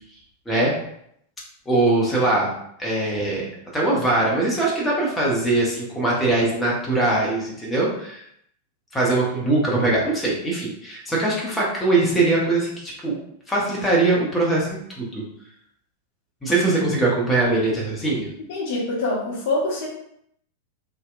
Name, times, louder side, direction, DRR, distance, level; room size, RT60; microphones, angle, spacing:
voice 1, 1.7-2.5 2.8-3.5 3.7-8.2 8.9-13.1 13.5-15.2 16.4-18.3, right 2 dB, 10° left, -4 dB, 0.7 m, -21 dB
voice 2, 18.5-19.9, left 2 dB, 50° left, -4 dB, 0.7 m, -25 dB
2.7 x 2.1 x 2.4 m, 0.72 s
figure-of-eight pair, 90°, 0 cm